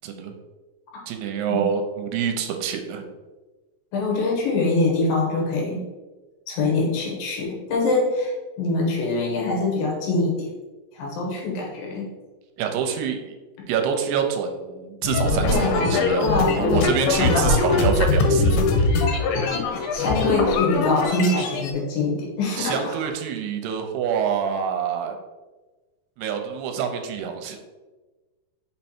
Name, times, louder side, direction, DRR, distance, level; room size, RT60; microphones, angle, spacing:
voice 1, 0.0-0.3 1.1-3.0 12.6-13.4 13.7-18.6 22.6-25.1 26.2-27.6, right 7 dB, 80° right, 5 dB, 2.6 m, -26 dB
voice 2, 3.9-5.8 6.5-10.5 11.0-12.1 15.4-16.8 17.2-17.8 18.9-19.1 19.5-22.9, left 3 dB, 70° left, -1 dB, 2.7 m, -24 dB
sound 1, 15.0-21.7, left 3 dB, 85° left, 2.8 m, -22 dB
6.0 x 4.4 x 4.3 m, 1.2 s
omnidirectional pair, 4.7 m